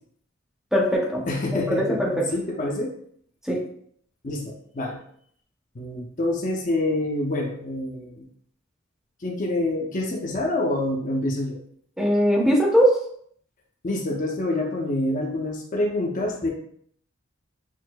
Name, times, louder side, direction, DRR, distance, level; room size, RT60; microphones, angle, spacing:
voice 1, 0.7-1.2 1.5-2.1 3.5-3.6 12.0-12.9, equal, ahead, -2 dB, 0.6 m, -20 dB
voice 2, 1.3-2.9 4.2-5.0 5.7-8.3 9.2-11.6 13.8-16.5, left 2 dB, 40° left, 0 dB, 0.6 m, -27 dB
6.1 x 2.5 x 2.2 m, 0.64 s
head